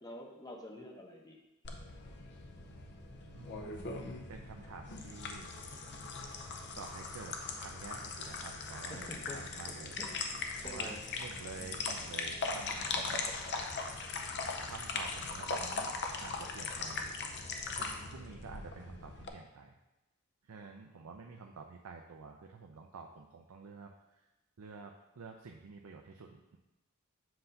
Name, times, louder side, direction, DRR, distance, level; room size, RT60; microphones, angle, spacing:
voice 1, 0.0-1.4 8.9-9.4 9.7-10.1 10.6-11.0 11.5-11.8, left 1 dB, 20° left, 1 dB, 0.8 m, -47 dB
sound 1, 1.6-19.3, left 4 dB, 55° left, 0.7 m, -40 dB
voice 2, 3.3-3.9 4.3-5.5 6.8-10.0 10.6-13.3 14.6-15.9 16.2-17.1 18.1-19.7 20.4-24.3 24.6-26.6, right 4 dB, 90° right, 2 dB, 0.5 m, -49 dB
7.7 x 2.6 x 5.6 m, 1.0 s
head